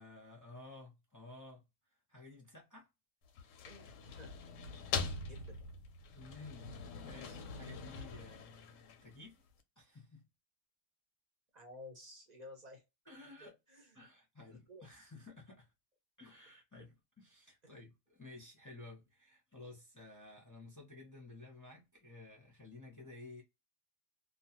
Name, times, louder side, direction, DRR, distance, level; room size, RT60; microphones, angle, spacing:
voice 1, 0.0-1.6 2.1-2.9 6.1-6.7 7.0-9.4 9.8-10.2 13.1-13.5 13.9-15.7 16.2-23.4, left 2 dB, 20° left, 0.6 m, -54 dB
sound 1, 3.2-9.3, left 5 dB, 85° left, 0.9 m, -43 dB
voice 2, 3.7-4.3 5.0-5.6 11.5-12.8 13.4-14.1 14.5-14.9 17.6-17.8, left 1 dB, 40° right, 0.8 m, -54 dB
2.4 x 2.3 x 2.8 m
omnidirectional pair, 1.3 m